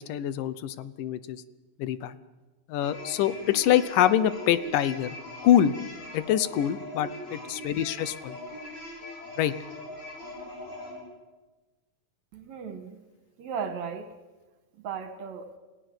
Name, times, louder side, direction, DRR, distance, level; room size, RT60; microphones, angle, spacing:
voice 1, 0.0-1.4 1.8-2.2 2.7-5.1 5.4-5.7 6.1-8.4 9.4-9.5, left 11 dB, 80° left, 15 dB, 2.5 m, -25 dB
sound 1, 2.8-11.0, left 2 dB, 55° left, 6.8 m, -41 dB
voice 2, 12.3-13.0 13.4-14.2 14.8-15.5, right 6 dB, 60° right, 8 dB, 2.6 m, -36 dB
29.0 x 17.0 x 7.9 m, 1.2 s
omnidirectional pair, 3.9 m